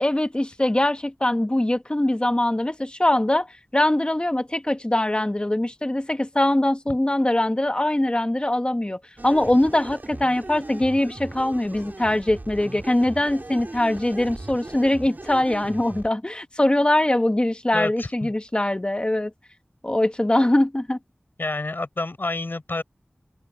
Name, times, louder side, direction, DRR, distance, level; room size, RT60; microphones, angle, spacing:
voice 1, 0.0-3.5 3.7-19.3 19.8-21.0, left 1 dB, 25° left, 1.2 m, -22 dB
sound 1, 9.2-16.1, right 2 dB, 50° right, 4.0 m, -38 dB
voice 2, 17.7-18.3 21.4-22.8, left 2 dB, 60° left, 4.3 m, -29 dB
open air
wide cardioid pair, 55°, 4 cm